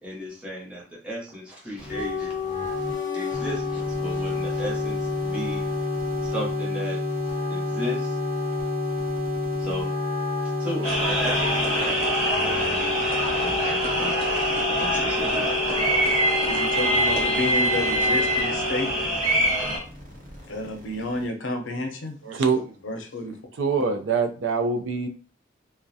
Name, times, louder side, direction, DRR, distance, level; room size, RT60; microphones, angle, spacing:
voice 1, 0.0-2.3 3.1-5.6 6.2-7.0 7.5-8.2 9.6-9.9 10.6-12.9 13.4-14.2 14.7-15.5, equal, 5° right, -5 dB, 0.7 m, -35 dB
Wind instrument woodwind instrument, 1.7-19.1, left 5 dB, 35° left, 0.6 m, -31 dB
sound 1, 1.8-21.3, equal, 50° right, 0.9 m, -34 dB
sound 2, 10.8-19.8, right 1 dB, 25° right, 1.1 m, -24 dB
voice 2, 16.5-18.9 20.5-22.2 22.8-23.4, left 2 dB, 85° left, 4 dB, 0.6 m, -31 dB
voice 3, 22.2-22.7 23.6-25.1, right 5 dB, 80° right, 5 dB, 0.4 m, -24 dB
2.3 x 2.1 x 2.6 m, 0.39 s
head